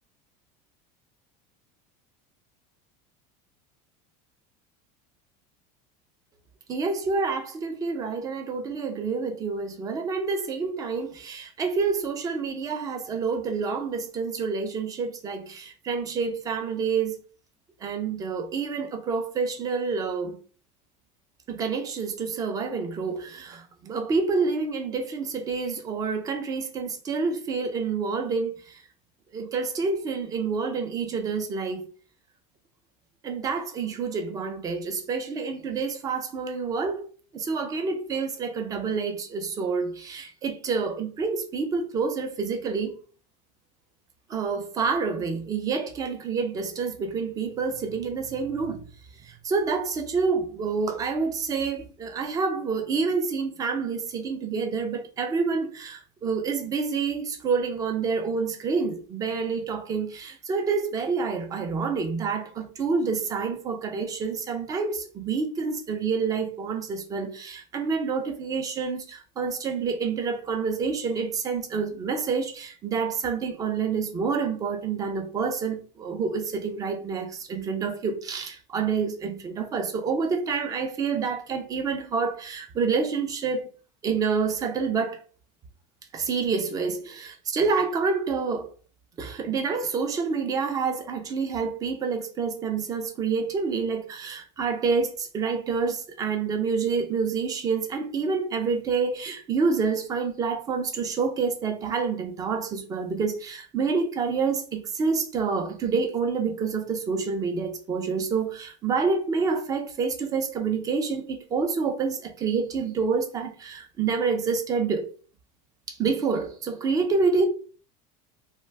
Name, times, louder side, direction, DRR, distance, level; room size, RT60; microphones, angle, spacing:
voice 1, 6.7-17.2 17.8-20.4 21.5-28.8 29.3-31.9 33.2-37.1 37.3-43.0 44.3-48.8 49.2-83.7 84.0-85.2 86.1-88.7 89.2-115.1 115.9-117.5, right 5 dB, 20° right, 0.4 m, -28 dB
2.4 x 2.2 x 3.2 m
cardioid pair, 165°, 18 cm